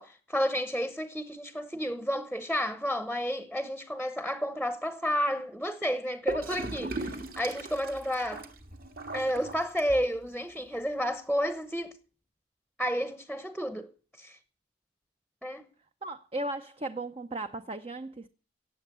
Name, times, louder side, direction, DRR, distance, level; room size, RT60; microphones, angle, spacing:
voice 1, 0.0-8.5 9.1-11.9 12.8-13.9 14.2-14.4 15.4-15.6, equal, ahead, 0.9 m, -31 dB
Gurgling / Toilet flush, 6.3-10.2, right 2 dB, 50° right, 1.8 m, -38 dB
voice 2, 16.0-18.3, right 2 dB, 30° right, 0.7 m, -36 dB
17.0 x 7.7 x 8.1 m
head